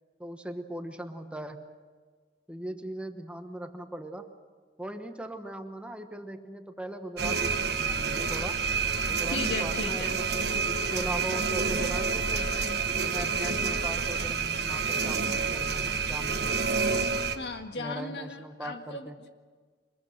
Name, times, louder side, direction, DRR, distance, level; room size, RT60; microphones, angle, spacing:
voice 1, 0.2-1.6 2.5-4.3 4.8-8.6 9.0-12.5 13.0-16.8 17.8-19.2, right 1 dB, 5° right, 6 dB, 1.1 m, -39 dB
sound 1, 7.2-17.4, right 5 dB, 70° right, 1.3 m, -28 dB
voice 2, 9.3-10.2 17.3-19.3, left 3 dB, 70° left, 6 dB, 1.7 m, -36 dB
24.0 x 21.0 x 6.6 m, 1.5 s
head